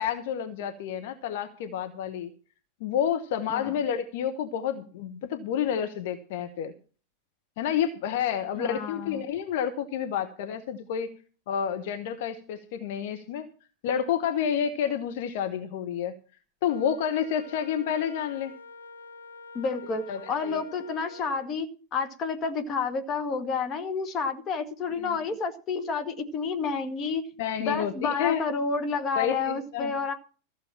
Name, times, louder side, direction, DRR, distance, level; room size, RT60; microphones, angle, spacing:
voice 1, 0.0-2.3 2.8-6.7 7.6-11.1 11.5-13.5 13.8-16.1 16.6-18.5 19.9-20.6 25.0-25.2 27.4-28.4 29.2-29.9, left 8 dB, 50° left, 7 dB, 1.2 m, -29 dB
voice 2, 8.5-9.2 19.5-27.3 27.6-30.1, left 5 dB, 30° left, 7 dB, 2.0 m, -30 dB
Wind instrument woodwind instrument, 16.6-21.5, left 3 dB, 75° left, 1.1 m, -46 dB
15.0 x 6.9 x 7.2 m, 0.38 s
figure-of-eight pair, 90°, 0 cm